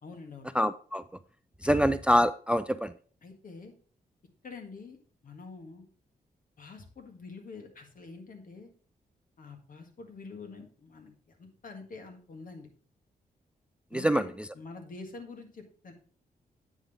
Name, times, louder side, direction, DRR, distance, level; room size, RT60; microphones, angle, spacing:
voice 1, 0.0-0.5 1.6-1.8 3.2-3.7 4.4-5.0 5.2-5.9 6.6-8.7 9.4-12.7 13.9-15.9, left 4 dB, 60° left, 1.8 m, -46 dB
voice 2, 0.5-1.0 1.6-2.9 13.9-14.3, equal, 5° right, 0.3 m, -25 dB
9.1 x 3.8 x 5.1 m
cardioid pair, 70°, 16 cm